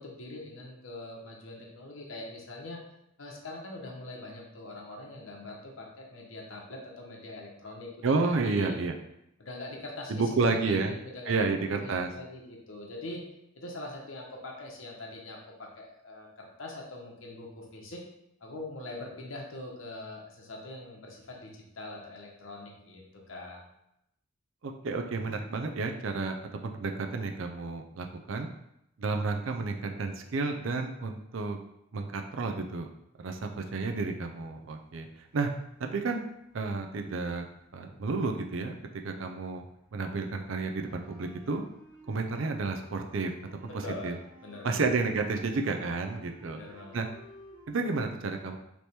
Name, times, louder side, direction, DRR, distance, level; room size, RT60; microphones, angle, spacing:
voice 1, 0.0-2.8 3.2-8.7 9.4-10.1 10.4-13.2 13.5-18.0 18.4-23.6 43.7-44.9 46.5-47.0, left 2 dB, 85° left, -1 dB, 0.9 m, -43 dB
voice 2, 8.0-9.0 10.1-10.9 11.3-12.1 24.6-26.4 26.6-28.5 29.0-31.6 31.9-32.9 33.2-35.1 35.3-35.5 35.8-36.3 36.5-37.5 37.7-38.7 39.0-39.6 39.9-41.6 42.1-43.3 44.0-44.2 44.6-46.6 46.9-47.1 47.7-48.6, right 3 dB, 80° right, 4 dB, 0.5 m, -31 dB
sound 1, 35.0-35.9 36.2-39.2 39.5-47.7, equal, 10° right, 1.6 m, -55 dB
3.3 x 3.0 x 4.2 m, 0.80 s
head